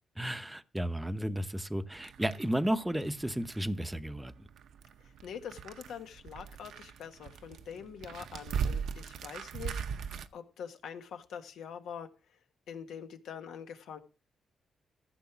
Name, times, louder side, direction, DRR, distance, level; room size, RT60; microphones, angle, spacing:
voice 1, 0.2-4.5, right 1 dB, 5° right, 0.7 m, -33 dB
sound 1, 1.9-10.3, right 7 dB, 75° right, 0.8 m, -40 dB
voice 2, 5.2-12.1 12.7-14.0, left 7 dB, 90° left, 1.5 m, -44 dB
14.5 x 6.5 x 6.0 m
cardioid pair, 135°, 0 cm